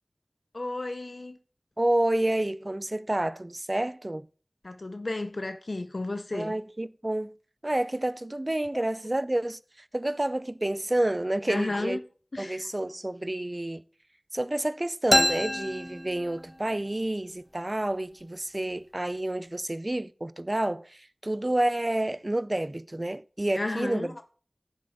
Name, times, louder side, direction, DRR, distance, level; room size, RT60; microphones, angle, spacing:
voice 1, 0.5-1.4 4.6-6.5 11.5-12.0 12.3-12.6 23.5-24.2, left 2 dB, 70° left, 0.6 m, -33 dB
voice 2, 1.8-4.3 6.3-7.3 7.6-9.6 9.9-12.0 12.4-13.8 14.3-24.1, right 1 dB, 35° right, 0.5 m, -29 dB
sound 1, 15.1-16.8, equal, 10° left, 0.6 m, -26 dB
11.0 x 7.5 x 3.8 m
wide cardioid pair, 40°, 0 cm